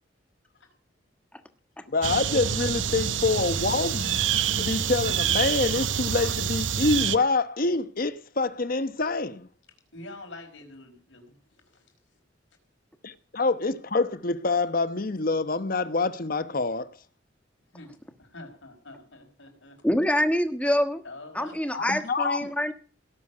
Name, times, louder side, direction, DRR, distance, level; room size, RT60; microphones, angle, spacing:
voice 1, 1.9-4.2 4.5-9.5 13.0-16.9 21.7-22.5, left 3 dB, 50° left, 1.0 m, -26 dB
sound 1, 2.0-7.2, right 8 dB, 80° right, 0.8 m, -27 dB
voice 2, 9.9-11.9 17.7-19.8 20.1-20.2 21.0-21.6, left 2 dB, 90° left, 4.8 m, -46 dB
voice 3, 19.8-21.0 21.3-22.7, equal, 5° left, 1.4 m, -25 dB
18.0 x 7.2 x 9.8 m
head